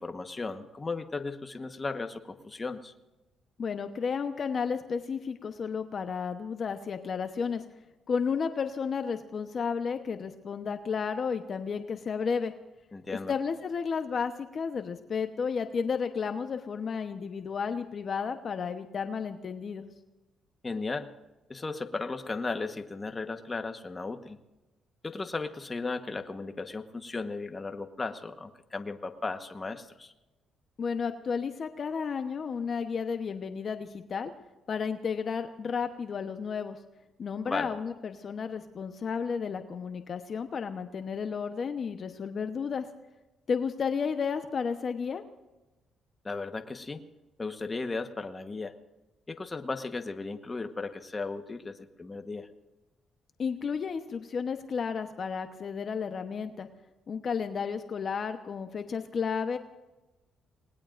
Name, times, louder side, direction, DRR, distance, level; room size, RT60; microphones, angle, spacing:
voice 1, 0.0-2.9 12.9-13.3 20.6-21.1 21.5-24.4 25.0-30.1 37.4-37.7 46.2-47.0 47.4-48.7 49.3-52.5, left 3 dB, 25° left, 7 dB, 1.2 m, -36 dB
voice 2, 3.6-7.6 8.1-12.5 13.1-19.9 30.8-34.3 34.7-36.8 37.2-42.9 43.5-45.2 53.4-56.7 57.1-59.6, left 6 dB, 50° left, 7 dB, 1.0 m, -32 dB
28.5 x 19.5 x 2.6 m, 1.0 s
cardioid pair, 90°, 0 cm